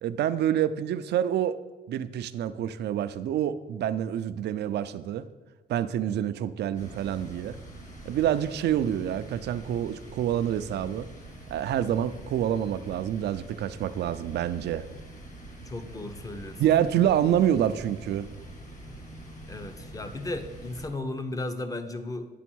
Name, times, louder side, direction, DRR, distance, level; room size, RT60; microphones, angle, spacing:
voice 1, 0.0-1.6 1.9-5.3 5.7-7.6 8.0-11.1 11.5-14.8 16.6-18.3, right 10 dB, 70° right, 12 dB, 0.4 m, -27 dB
sound 1, 6.8-20.9, right 1 dB, 45° left, 1.6 m, -45 dB
voice 2, 15.6-16.6 19.5-22.3, left 2 dB, 20° left, 8 dB, 0.7 m, -35 dB
9.3 x 3.5 x 6.1 m, 1.2 s
cardioid pair, 110°, 18 cm